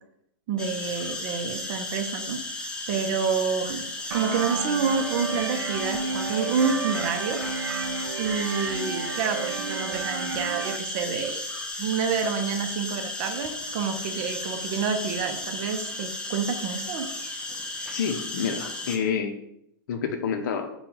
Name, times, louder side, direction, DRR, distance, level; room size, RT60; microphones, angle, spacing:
voice 1, 0.5-2.4 2.9-3.8 4.1-7.4 8.2-11.5 11.8-17.1, right 6 dB, 45° right, 6 dB, 0.6 m, -28 dB
sound 1, 0.6-19.0, left 2 dB, 10° left, 0.4 m, -34 dB
sound 2, 4.1-10.8, right 5 dB, 90° right, 0.4 m, -32 dB
voice 2, 17.9-19.3 19.9-20.7, left 6 dB, 60° left, 6 dB, 0.6 m, -28 dB
3.7 x 2.3 x 4.3 m, 0.77 s
hypercardioid pair, 130°, 12 cm